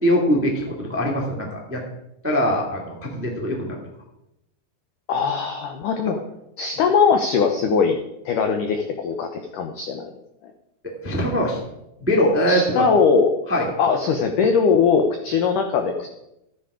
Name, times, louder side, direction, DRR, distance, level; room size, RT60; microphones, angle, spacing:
voice 1, 0.0-1.8 2.2-3.7 11.0-11.6 12.0-12.8 13.5-13.7, equal, 10° right, -1 dB, 0.8 m, -22 dB
voice 2, 5.1-6.2 6.6-8.0 8.3-10.1 12.5-13.3 13.8-16.1, left 5 dB, 80° left, 5 dB, 1.8 m, -20 dB
13.0 x 9.7 x 4.9 m, 0.86 s
omnidirectional pair, 4.9 m